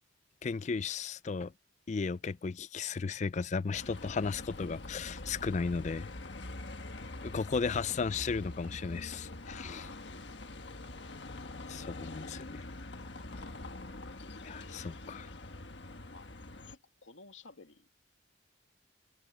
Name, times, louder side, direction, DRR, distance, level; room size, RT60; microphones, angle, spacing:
voice 1, 0.4-1.5 1.9-6.1 7.2-9.8 11.7-12.6 14.4-15.3, left 5 dB, 35° left, 0.4 m, -35 dB
Bus, 3.7-16.8, left 2 dB, 65° left, 1.5 m, -44 dB
voice 2, 9.5-10.3 12.0-12.1 14.7-15.1 16.0-16.3 16.7-17.9, left 4 dB, 85° left, 2.2 m, -54 dB
head